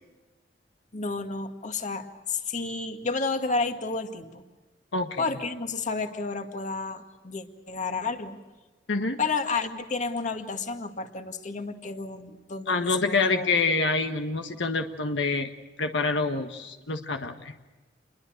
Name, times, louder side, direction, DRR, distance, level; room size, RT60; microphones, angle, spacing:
voice 1, 0.9-4.4 5.2-8.4 9.2-13.5, left 4 dB, 45° left, 6 dB, 2.0 m, -31 dB
voice 2, 4.9-5.4 8.9-9.2 12.7-15.5 15.8-17.5, left 3 dB, 80° left, 6 dB, 1.6 m, -26 dB
28.5 x 22.0 x 6.6 m, 1.2 s
head